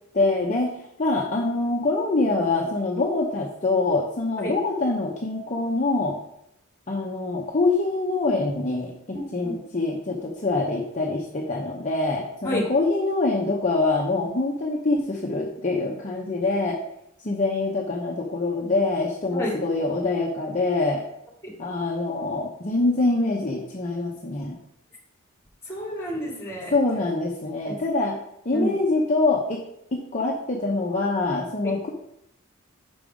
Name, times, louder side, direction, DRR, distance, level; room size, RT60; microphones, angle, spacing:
voice 1, 0.1-6.2 6.9-8.9 9.3-16.8 17.2-21.0 21.6-24.6 26.7-28.2 28.4-29.6 29.9-31.9, left 3 dB, 35° left, -2 dB, 0.7 m, -24 dB
voice 2, 9.1-9.5 12.4-12.7 19.3-19.6 21.4-21.5 25.6-26.7 27.7-27.8 28.5-28.8 31.6-31.8, equal, 15° left, -2 dB, 2.2 m, -30 dB
6.1 x 5.2 x 5.1 m, 0.79 s
head